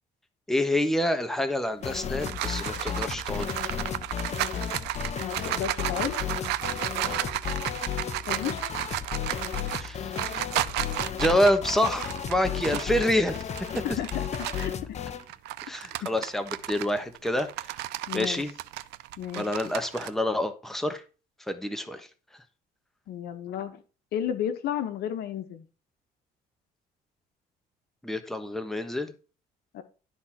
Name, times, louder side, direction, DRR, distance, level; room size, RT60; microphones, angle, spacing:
voice 1, 0.5-3.5 7.0-7.3 9.8-10.2 11.1-13.4 13.9-14.0 15.7-17.7 18.1-18.5 19.3-21.0 21.5-22.1 28.0-29.1, left 1 dB, ahead, 7 dB, 1.2 m, -27 dB
sound 1, 1.8-15.2, left 8 dB, 40° left, 1.1 m, -34 dB
sound 2, 1.8-14.8 15.2-20.1, right 16 dB, 90° right, 0.6 m, -33 dB
voice 2, 5.2-6.2 8.3-8.6 12.7-12.8 13.8-15.0 16.0-16.1 18.1-18.4 19.2-19.7 23.1-23.8 24.1-25.6 29.7-29.8, left 10 dB, 75° left, 9 dB, 1.4 m, -33 dB
12.0 x 4.2 x 5.9 m, 0.34 s
cardioid pair, 110°, 17 cm